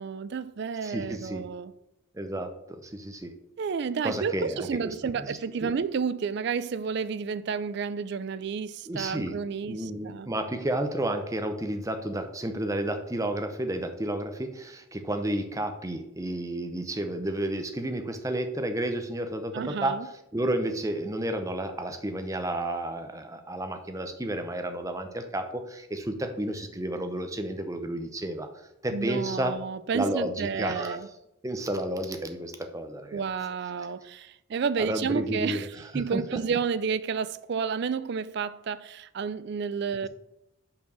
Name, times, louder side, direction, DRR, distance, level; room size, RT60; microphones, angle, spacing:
voice 1, 0.0-1.7 3.6-10.3 19.5-20.1 28.9-31.1 33.1-35.7 35.9-40.1, right 6 dB, 50° right, 0.3 m, -31 dB
voice 2, 0.8-1.4 2.1-2.5 2.8-3.3 4.0-5.7 8.9-9.3 9.6-19.9 20.3-28.5 28.8-29.5 29.9-31.0 31.4-33.2 34.8-36.4 40.0-40.1, right 1 dB, 15° right, 0.6 m, -31 dB
5.8 x 4.5 x 6.1 m
head